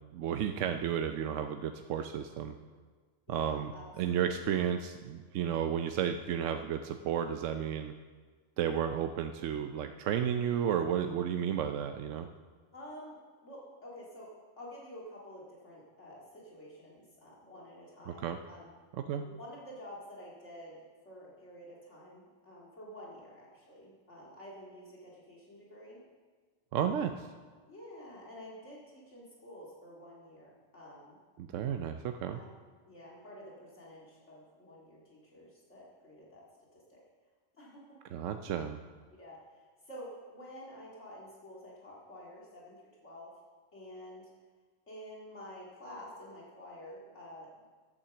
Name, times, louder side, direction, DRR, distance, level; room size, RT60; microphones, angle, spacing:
voice 1, 0.0-2.5 3.3-3.7 4.0-7.9 8.6-12.3 18.1-18.4 19.1-19.2 26.7-27.3 31.4-32.4 38.1-38.8, right 9 dB, 80° right, 6 dB, 0.9 m, -32 dB
voice 2, 3.3-4.4 12.7-13.2 13.4-18.7 19.2-20.8 21.0-26.0 27.7-31.2 32.3-32.6 32.9-36.4 36.7-37.0 37.5-37.9 38.5-38.6 39.2-42.8 43.0-43.3 43.7-44.3 44.9-47.5, equal, 65° left, -5 dB, 2.4 m, -49 dB
10.5 x 8.6 x 7.0 m, 1.5 s
omnidirectional pair, 1.3 m